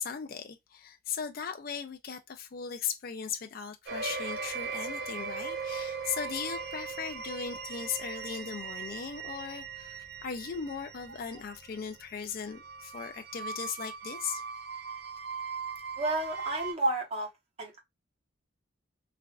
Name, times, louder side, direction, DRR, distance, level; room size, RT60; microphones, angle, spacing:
voice 1, 0.0-14.4, left 7 dB, 45° left, 0.4 m, -38 dB
sound 1, 3.9-16.7, right 5 dB, 55° right, 0.5 m, -39 dB
voice 2, 16.0-17.3 17.6-17.8, right 2 dB, 30° right, 0.9 m, -30 dB
3.3 x 2.4 x 2.3 m
head